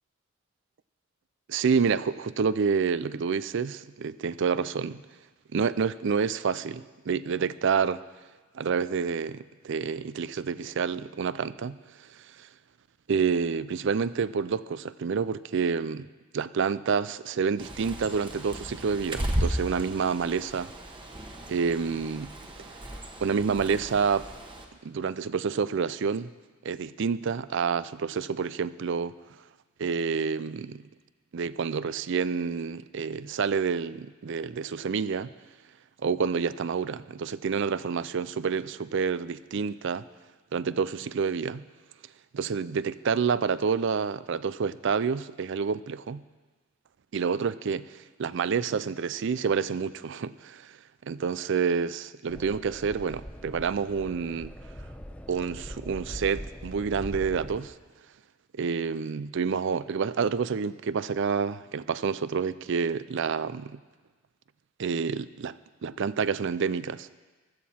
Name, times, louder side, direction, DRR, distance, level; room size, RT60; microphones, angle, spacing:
voice 1, 1.5-5.0 5.5-8.0 8.5-11.8 12.0-12.5 13.1-16.1 16.3-20.7 21.5-22.3 23.2-24.3 24.8-26.3 26.6-29.1 29.8-30.8 31.3-35.3 36.0-40.0 40.5-41.6 42.3-46.2 47.1-50.8 51.0-54.5 55.3-57.7 58.5-63.8 64.8-65.5 65.8-67.1, right 6 dB, 65° right, 16 dB, 0.4 m, -28 dB
Bird, 17.6-24.6, right 1 dB, 25° right, 1.3 m, -35 dB
sound 1, 52.3-57.6, equal, 5° left, 0.8 m, -42 dB
16.0 x 12.5 x 4.3 m, 1.3 s
head